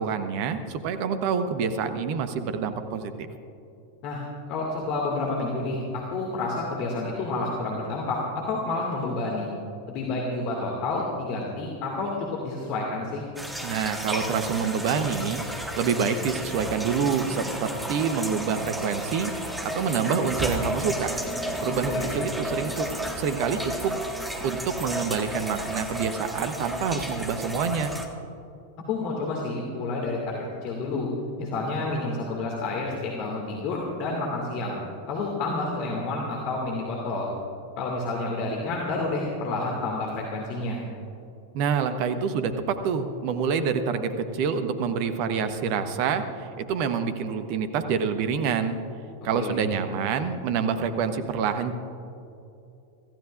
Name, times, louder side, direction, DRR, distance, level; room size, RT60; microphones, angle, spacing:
voice 1, 0.0-3.3 13.6-19.3 19.6-21.1 21.6-22.9 23.2-23.9 24.4-27.9 41.5-48.8 49.2-51.7, right 6 dB, 45° right, 9 dB, 1.1 m, -27 dB
voice 2, 4.5-9.5 9.9-13.2 21.9-22.1 28.9-31.1 31.4-34.8 35.1-37.3 37.8-40.8 49.3-49.6, left 2 dB, 40° left, -1 dB, 2.2 m, -29 dB
sound 1, 13.4-28.1, equal, 5° right, 1.7 m, -33 dB
25.5 x 15.0 x 2.5 m, 2.7 s
figure-of-eight pair, 90°, 0 cm